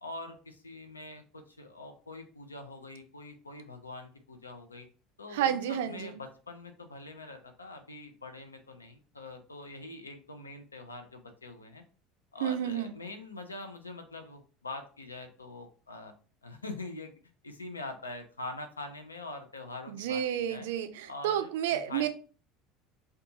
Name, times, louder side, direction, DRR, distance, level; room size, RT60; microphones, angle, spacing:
voice 1, 0.0-4.9 5.2-11.8 12.3-16.1 16.4-17.1 17.4-20.7 21.1-22.1, left 2 dB, 90° left, 0.4 m, -44 dB
voice 2, 5.3-6.2 12.4-12.9 19.9-22.1, right 10 dB, 70° right, 0.3 m, -31 dB
2.5 x 2.3 x 2.7 m
hypercardioid pair, 70°, 0 cm